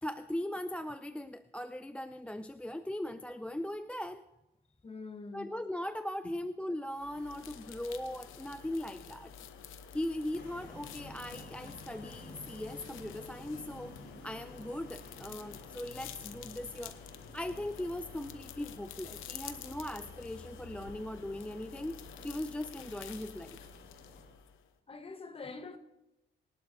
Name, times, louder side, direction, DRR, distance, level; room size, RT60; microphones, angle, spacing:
voice 1, 0.0-4.2 5.3-9.3 9.9-16.9 17.3-23.6, left 1 dB, 5° left, 0.4 m, -39 dB
voice 2, 4.8-5.5 6.2-6.4 24.9-25.8, left 4 dB, 30° left, 1.3 m, -45 dB
sound 1, 6.9-24.7, left 8 dB, 90° left, 0.9 m, -50 dB
sound 2, 10.3-24.3, left 2 dB, 60° left, 4.4 m, -53 dB
22.5 x 11.5 x 2.7 m
cardioid pair, 90°, 20 cm